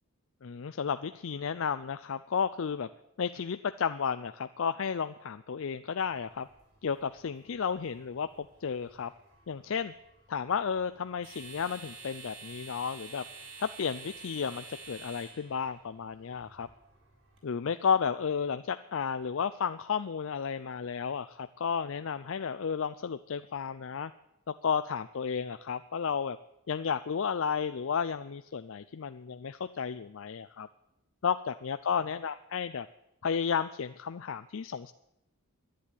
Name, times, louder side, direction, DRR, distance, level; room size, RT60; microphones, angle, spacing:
voice 1, 0.4-2.9 3.2-6.5 6.8-8.3 8.6-9.1 9.5-9.9 10.3-13.2 13.6-16.7 17.4-24.1 24.6-26.4 26.7-30.7 31.2-32.9 33.2-34.9, left 6 dB, 60° left, 11 dB, 0.4 m, -32 dB
sound 1, 6.1-17.4, right 4 dB, 60° right, 6.9 m, -50 dB
11.0 x 10.5 x 9.7 m, 0.86 s
head